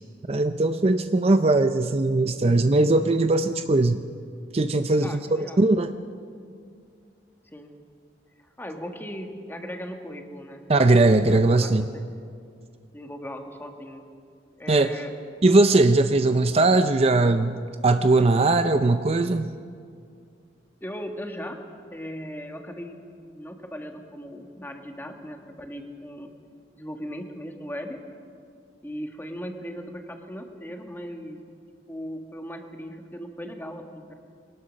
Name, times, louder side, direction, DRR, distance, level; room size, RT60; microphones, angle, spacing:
voice 1, 0.3-4.1 4.5-5.9 10.7-11.9 14.7-14.9 15.4-19.5, right 2 dB, 35° right, 9 dB, 0.5 m, -20 dB
voice 2, 4.9-5.7 7.5-7.7 8.6-10.6 11.5-12.0 12.9-14.0 14.6-15.2 20.8-21.6 21.9-23.0 23.3-26.3 26.7-28.0 28.8-31.4 31.9-34.1, equal, 10° left, 4 dB, 1.6 m, -38 dB
22.5 x 19.0 x 6.4 m, 2.2 s
head